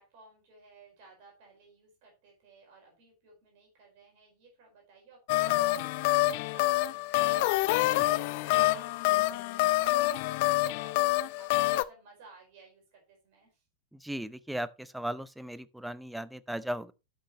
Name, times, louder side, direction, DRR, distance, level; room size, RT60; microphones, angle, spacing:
voice 1, 0.0-13.6, right 3 dB, 50° right, 4.6 m, -56 dB
sound 1, 5.3-11.8, left 18 dB, 50° left, 0.5 m, -27 dB
voice 2, 13.9-16.9, right 1 dB, 5° right, 0.5 m, -37 dB
12.5 x 6.4 x 3.0 m
figure-of-eight pair, 90°, 0 cm